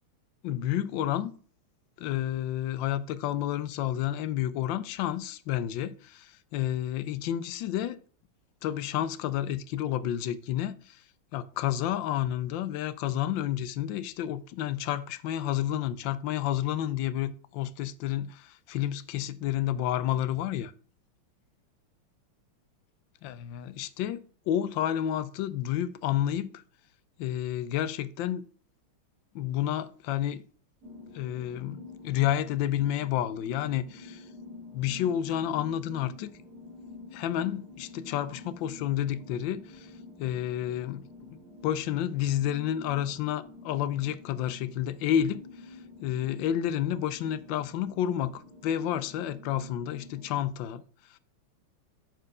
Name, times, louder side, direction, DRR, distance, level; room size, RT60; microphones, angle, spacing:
voice 1, 0.4-1.3 2.0-8.0 8.6-11.0 11.3-20.7 23.2-26.6 27.2-28.5 29.3-30.4 31.1-34.3 34.7-36.3 37.1-39.9 40.2-41.4 41.6-51.2, left 11 dB, 75° left, 1.2 m, -30 dB
sound 1, 30.8-50.4, left 3 dB, 80° right, 4.3 m, -49 dB
7.6 x 4.6 x 4.7 m
omnidirectional pair, 2.4 m